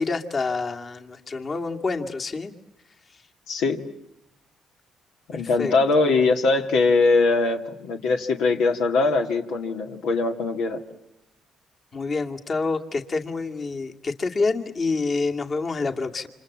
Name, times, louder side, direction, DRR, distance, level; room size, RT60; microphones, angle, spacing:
voice 1, 0.0-2.5 5.3-5.7 11.9-16.3, left 3 dB, 40° left, 4 dB, 2.3 m, -27 dB
voice 2, 3.5-3.8 5.3-10.8, left 3 dB, 85° left, 3 dB, 2.3 m, -21 dB
29.0 x 27.0 x 7.4 m, 0.83 s
supercardioid pair, 75°, 0 cm